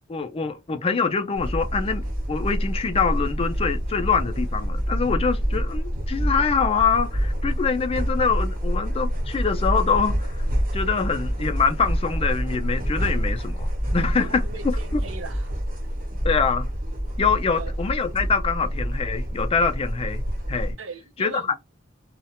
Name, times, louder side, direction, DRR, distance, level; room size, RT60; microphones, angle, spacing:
voice 1, 0.1-2.0 2.3-10.4 10.7-14.4 16.2-16.7 17.2-20.8 21.2-21.5, left 5 dB, 30° left, 0.4 m, -24 dB
sound 1, 1.4-20.7, equal, 45° right, 0.9 m, -27 dB
voice 2, 14.2-15.5 17.5-17.7 20.8-21.6, right 4 dB, 75° right, 0.6 m, -39 dB
2.3 x 2.1 x 2.8 m
head